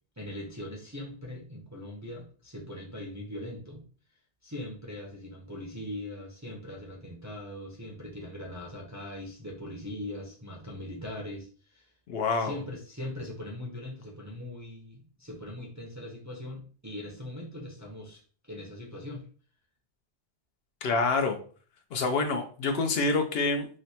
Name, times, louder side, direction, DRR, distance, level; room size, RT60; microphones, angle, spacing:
voice 1, 0.2-3.8 4.4-11.9 12.4-18.2 18.5-19.2, left 1 dB, 20° right, -2 dB, 0.5 m, -40 dB
voice 2, 12.1-12.5 20.8-21.4 21.9-23.7, left 3 dB, 65° left, 5 dB, 0.8 m, -27 dB
3.0 x 2.1 x 4.1 m, 0.42 s
omnidirectional pair, 1.1 m